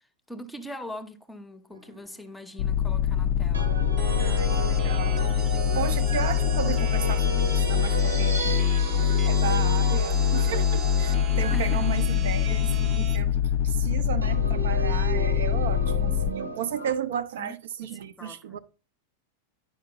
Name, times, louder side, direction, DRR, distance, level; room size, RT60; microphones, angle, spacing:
voice 1, 0.3-3.8 11.5-11.9 17.4-17.6 18.2-18.4, right 1 dB, 5° left, 0.7 m, -40 dB
sound 1, 1.7-2.2 3.5-13.2 14.2-16.9, right 3 dB, 80° right, 1.0 m, -35 dB
sound 2, 2.6-16.3, left 9 dB, 45° left, 0.3 m, -24 dB
sound 3, 4.0-13.2, right 6 dB, 30° right, 0.8 m, -38 dB
voice 2, 4.2-5.2 5.7-18.6, right 9 dB, 60° right, 0.5 m, -34 dB
10.0 x 5.2 x 2.9 m
figure-of-eight pair, 90°, 0 cm